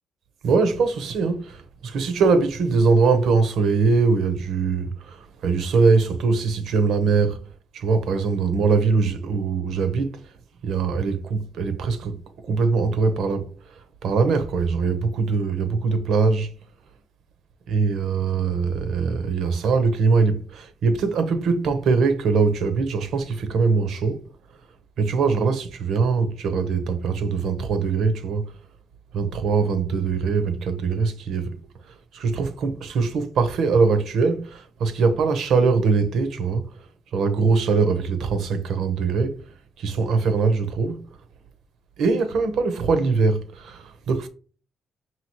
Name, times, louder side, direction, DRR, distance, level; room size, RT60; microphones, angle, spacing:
voice 1, 0.4-7.4 7.7-10.2 10.6-12.2 12.4-13.5 14.0-16.5 17.7-24.2 25.0-28.5 29.1-31.5 32.1-36.7 37.1-39.4 39.8-41.1 42.0-44.3, right 4 dB, 75° right, 0.8 m, -22 dB
5.6 x 2.9 x 3.0 m
cardioid pair, 90°, 0 cm